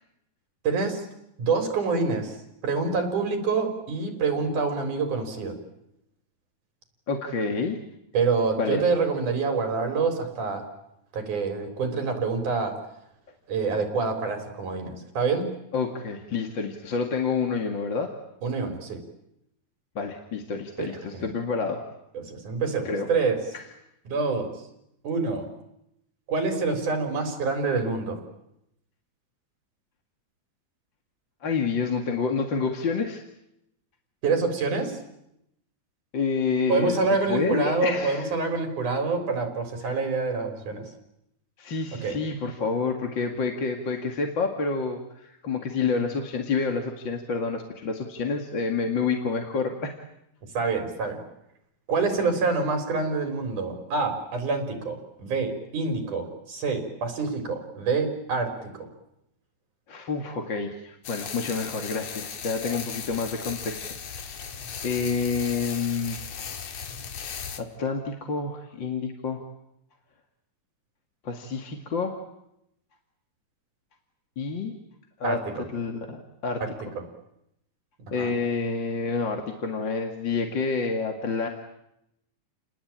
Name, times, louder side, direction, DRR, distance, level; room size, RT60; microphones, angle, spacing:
voice 1, 0.6-1.1 1.4-2.4 2.6-5.6 8.1-10.7 11.1-12.8 13.5-15.5 18.4-19.0 20.8-20.9 21.1-21.3 22.1-23.4 24.1-24.5 25.0-25.5 26.3-28.2 34.2-35.0 36.7-40.9 42.0-42.2 50.5-51.2 51.9-58.9 75.2-75.6 76.6-76.7 78.1-78.3, right 4 dB, 75° right, 6 dB, 5.6 m, -26 dB
voice 2, 7.1-7.8 8.6-8.8 15.7-18.1 20.0-21.8 22.8-23.1 23.5-23.6 31.4-33.2 36.1-38.3 39.8-40.0 41.6-49.9 59.9-64.0 64.8-66.2 67.6-69.4 71.2-72.2 74.4-74.7 75.2-75.4 75.7-76.6 78.1-81.5, left 4 dB, 40° left, 4 dB, 2.4 m, -28 dB
sound 1, 61.0-67.6, left 7 dB, 60° left, 2.7 m, -37 dB
30.0 x 20.0 x 8.9 m, 0.82 s
omnidirectional pair, 3.5 m